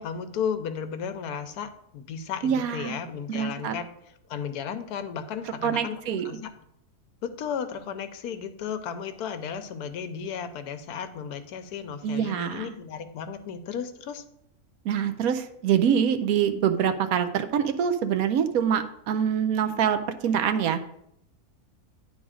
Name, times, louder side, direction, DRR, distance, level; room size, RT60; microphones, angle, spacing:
voice 1, 0.0-3.9 4.3-6.5 7.2-14.2, left 7 dB, 85° left, 9 dB, 1.2 m, -34 dB
voice 2, 2.4-2.9 3.3-3.7 5.6-6.2 12.0-12.7 14.8-20.8, right 8 dB, 75° right, 9 dB, 1.0 m, -25 dB
9.8 x 3.9 x 4.9 m, 0.75 s
omnidirectional pair, 1.6 m